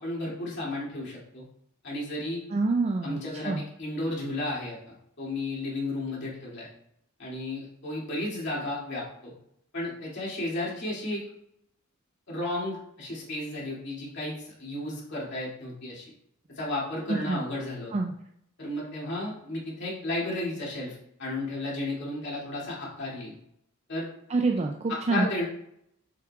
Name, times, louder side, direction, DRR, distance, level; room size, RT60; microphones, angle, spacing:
voice 1, 0.0-1.4 1.8-2.4 3.0-6.7 7.2-9.3 9.7-11.2 12.3-16.1 16.6-17.9 18.6-23.4 23.9-24.1 24.9-25.5, left 1 dB, 55° left, -6 dB, 2.6 m, -33 dB
voice 2, 2.5-3.2 3.4-3.6 17.1-17.4 17.9-18.1 24.3-25.3, right 3 dB, 30° right, 2 dB, 0.4 m, -26 dB
7.1 x 5.8 x 2.4 m, 0.73 s
head